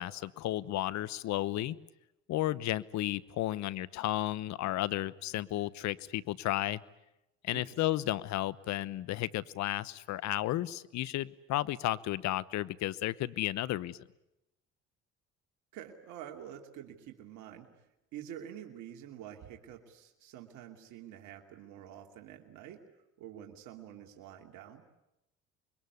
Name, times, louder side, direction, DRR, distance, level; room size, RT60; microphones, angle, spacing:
voice 1, 0.0-1.8 2.3-6.8 7.4-14.0, left 15 dB, 65° left, 19 dB, 1.0 m, -33 dB
voice 2, 7.5-7.8 15.7-17.8 18.1-22.8 23.2-24.8, right 10 dB, 75° right, 3 dB, 2.8 m, -48 dB
26.0 x 22.5 x 9.6 m, 0.89 s
supercardioid pair, 75°, 30 cm